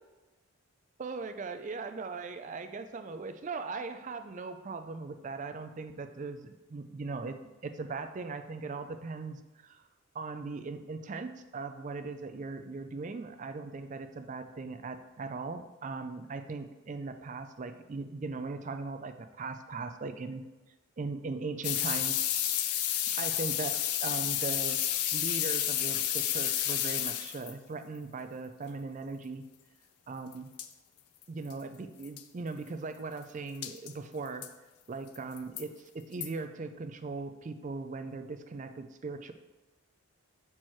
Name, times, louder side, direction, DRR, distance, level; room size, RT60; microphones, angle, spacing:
voice 1, 1.0-7.4 7.6-9.8 10.1-20.4 21.0-22.2 23.2-24.8 25.1-29.4 30.1-30.5 31.3-34.5 34.9-39.3, right 3 dB, 35° right, 8 dB, 0.3 m, -39 dB
sound 1, 21.6-27.5 30.3-30.4 30.6-30.7 31.2-31.3 31.5-31.6 32.0-32.2 33.6-33.9 34.4-34.5 35.1-35.6 36.2-36.3, left 11 dB, 90° left, 0.5 m, -31 dB
6.2 x 4.4 x 4.4 m, 1.2 s
head